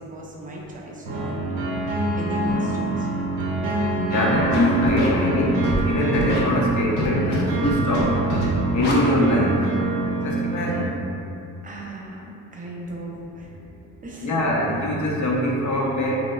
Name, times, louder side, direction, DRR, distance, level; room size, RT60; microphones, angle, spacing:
voice 1, 0.0-1.4 2.2-3.3 11.6-13.5 14.0-14.3, right 1 dB, 20° right, -3 dB, 0.5 m, -37 dB
sound 1, 1.1-10.8, right 2 dB, 70° right, 0.6 m, -25 dB
voice 2, 3.9-5.6 5.8-8.1 8.7-9.5 10.2-10.9 14.2-16.2, left 1 dB, 45° left, -3 dB, 0.6 m, -23 dB
Scratching (performance technique), 4.5-5.1 5.6-5.8 6.1-6.4 7.0-7.4 7.6-8.0 8.3-8.5 8.8-8.9, left 1 dB, 90° left, 0.5 m, -25 dB
2.8 x 2.0 x 2.2 m, 2.6 s
supercardioid pair, 50°, 42 cm